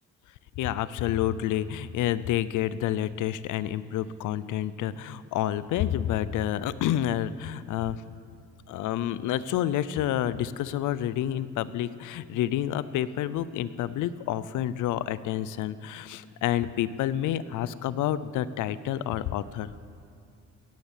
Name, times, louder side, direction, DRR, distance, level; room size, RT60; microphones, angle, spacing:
voice 1, 0.6-8.0 8.7-19.7, left 11 dB, 85° left, 16 dB, 0.6 m, -29 dB
16.5 x 10.5 x 7.4 m, 2.6 s
cardioid pair, 90°, 30 cm